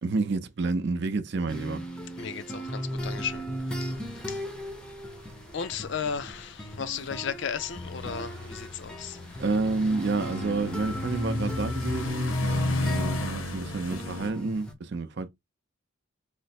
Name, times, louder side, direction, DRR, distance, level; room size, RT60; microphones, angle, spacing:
voice 1, 0.0-1.8 9.4-15.3, right 3 dB, 55° right, 0.5 m, -29 dB
sound 1, 1.5-14.7, equal, 5° left, 0.6 m, -37 dB
voice 2, 2.2-4.4 5.5-9.2 12.7-13.0, left 7 dB, 55° left, 0.4 m, -35 dB
sound 2, 3.0-14.3, left 2 dB, 75° left, 0.8 m, -34 dB
3.2 x 2.0 x 4.2 m
head